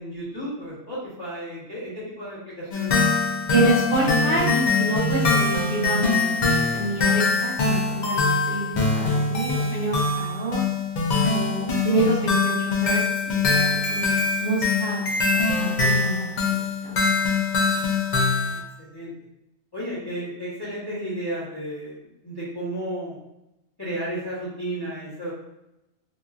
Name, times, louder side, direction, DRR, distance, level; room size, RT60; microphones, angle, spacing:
voice 1, 0.0-3.1 18.8-19.1 19.7-23.2 23.8-25.3, right 1 dB, 20° left, -11 dB, 0.8 m, -33 dB
sound 1, 2.7-18.6, left 3 dB, 85° left, 0.4 m, -23 dB
voice 2, 3.5-6.4 6.7-10.6 11.3-17.0, right 2 dB, 50° right, -8 dB, 0.8 m, -27 dB
3.0 x 2.6 x 2.3 m, 0.89 s
omnidirectional pair, 1.4 m